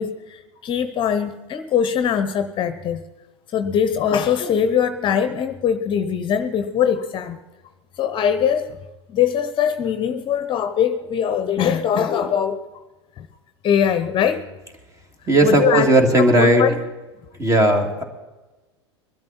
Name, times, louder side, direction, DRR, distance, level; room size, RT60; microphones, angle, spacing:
voice 1, 0.0-3.0 3.5-7.4 8.0-8.8 9.1-12.6 13.2-13.3 13.6-14.4 15.4-15.9 16.3-16.8, left 8 dB, 35° left, 10 dB, 1.0 m, -21 dB
voice 2, 15.3-16.6 17.4-18.0, right 1 dB, 20° right, 5 dB, 2.7 m, -16 dB
22.0 x 12.5 x 4.4 m, 1.1 s
hypercardioid pair, 90°, 15 cm